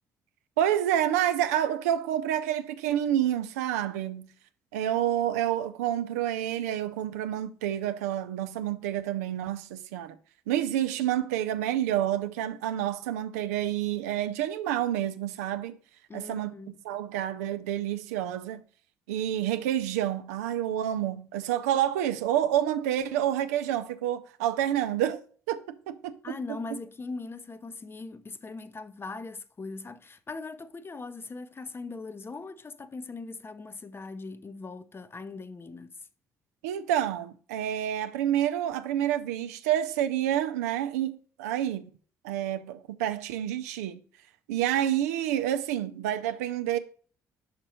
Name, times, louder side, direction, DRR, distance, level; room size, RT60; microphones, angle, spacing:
voice 1, 0.6-4.3 4.7-10.1 10.5-15.8 16.1-16.5 16.8-18.6 19.1-25.2 25.5-26.3 36.6-41.9 42.2-44.0 44.5-46.8, right 11 dB, 85° right, 0.4 m, -28 dB
voice 2, 16.1-16.8 26.2-36.0, left 3 dB, 30° left, 0.6 m, -40 dB
5.4 x 5.1 x 4.2 m
hypercardioid pair, 50°, 8 cm